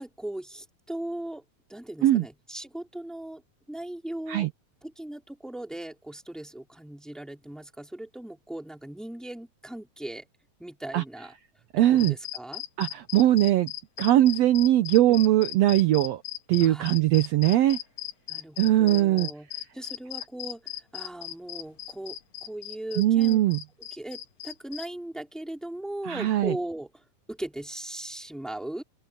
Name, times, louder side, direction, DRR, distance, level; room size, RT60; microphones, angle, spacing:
voice 1, 0.0-1.4 1.7-3.4 3.7-4.5 4.8-10.2 10.6-11.3 11.8-12.6 15.1-15.2 16.6-16.9 18.3-19.5 19.7-22.2 22.4-23.4 23.9-27.0 27.3-28.8, right 1 dB, ahead, 2.8 m, -38 dB
voice 2, 11.7-12.1 12.8-13.7 14.0-16.2 16.5-17.8 18.6-19.3 23.0-23.6 26.0-26.5, right 13 dB, 80° right, 1.5 m, -21 dB
sound 1, 12.0-24.9, left 14 dB, 50° left, 3.8 m, -37 dB
open air
omnidirectional pair, 3.9 m